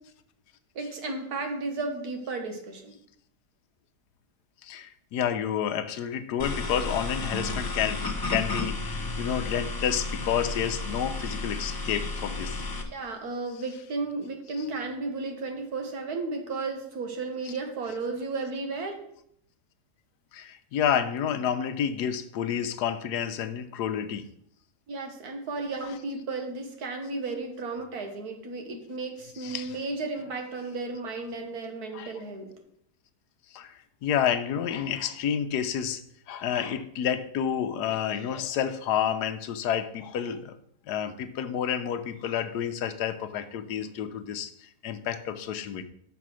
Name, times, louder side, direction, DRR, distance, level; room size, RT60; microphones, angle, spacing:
voice 1, 0.8-3.0 12.9-19.0 24.9-32.5 41.4-41.5, right 3 dB, 65° right, 4 dB, 1.9 m, -34 dB
voice 2, 4.6-12.6 20.3-24.2 29.4-29.7 31.9-32.1 33.5-36.0 36.3-40.5 40.9-45.8, left 9 dB, 80° left, 10 dB, 1.3 m, -30 dB
sound 1, 6.4-12.8, left 2 dB, 30° left, 0.4 m, -32 dB
7.0 x 5.8 x 6.2 m, 0.70 s
omnidirectional pair, 1.7 m